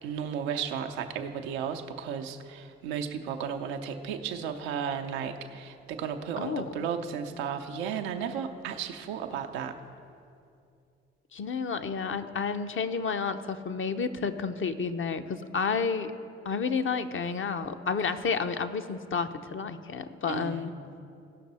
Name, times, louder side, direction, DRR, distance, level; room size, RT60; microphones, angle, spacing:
voice 1, 0.0-9.8 20.3-20.7, right 7 dB, 85° right, 5 dB, 0.6 m, -34 dB
voice 2, 11.3-16.1 16.4-20.7, left 5 dB, 40° left, 8 dB, 0.7 m, -30 dB
16.5 x 5.9 x 4.2 m, 2.5 s
hypercardioid pair, 45°, 30 cm